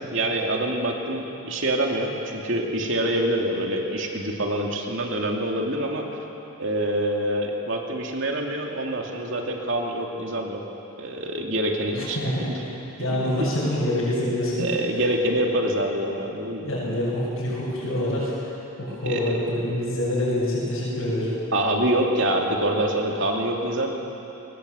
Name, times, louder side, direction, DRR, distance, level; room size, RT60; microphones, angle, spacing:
voice 1, 0.1-6.1 6.6-10.6 11.0-12.2 13.0-13.5 14.6-16.7 19.1-19.3 21.5-23.9, right 1 dB, 60° right, 1 dB, 2.7 m, -25 dB
voice 2, 11.9-12.5 13.0-14.7 14.9-15.1 16.6-21.3, left 1 dB, 70° left, -8 dB, 6.6 m, -26 dB
22.5 x 20.0 x 8.1 m, 3.0 s
head